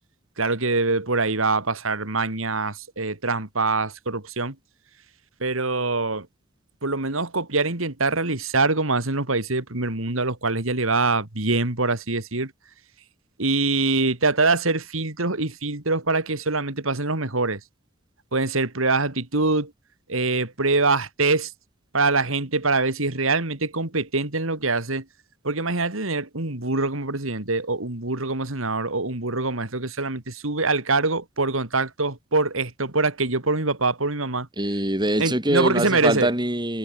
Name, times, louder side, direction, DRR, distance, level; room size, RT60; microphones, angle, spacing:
voice 1, 0.4-4.6 5.4-6.3 6.8-12.5 13.4-17.6 18.3-19.7 20.1-21.5 21.9-25.0 25.4-34.5 35.2-36.3, right 3 dB, 80° right, 2.9 m, -24 dB
voice 2, 34.6-36.8, right 1 dB, 20° right, 6.0 m, -23 dB
head